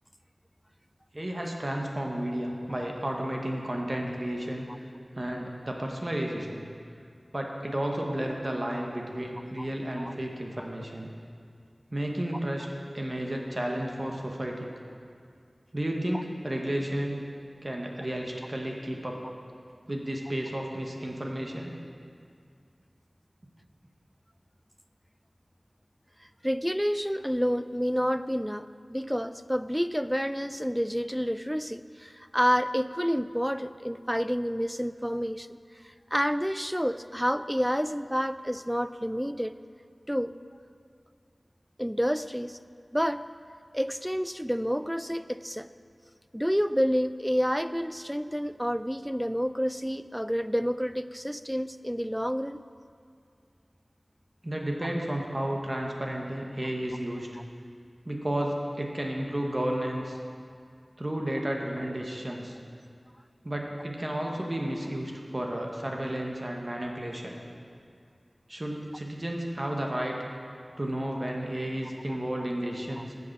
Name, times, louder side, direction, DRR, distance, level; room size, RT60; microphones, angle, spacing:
voice 1, 1.1-4.7 5.1-6.7 7.3-11.1 11.9-12.7 12.9-14.7 15.7-17.2 17.6-19.2 19.9-21.8 54.4-57.3 58.0-60.2 61.0-62.6 63.4-67.4 68.5-70.2 70.8-73.1, right 1 dB, 40° right, 0 dB, 1.2 m, -32 dB
voice 2, 26.4-35.6 35.8-39.5 40.1-40.3 41.8-42.6 42.9-43.3 43.7-45.7 46.3-52.6, equal, ahead, 13 dB, 0.3 m, -29 dB
8.4 x 6.6 x 7.3 m, 2.3 s
wide cardioid pair, 55°, 0 cm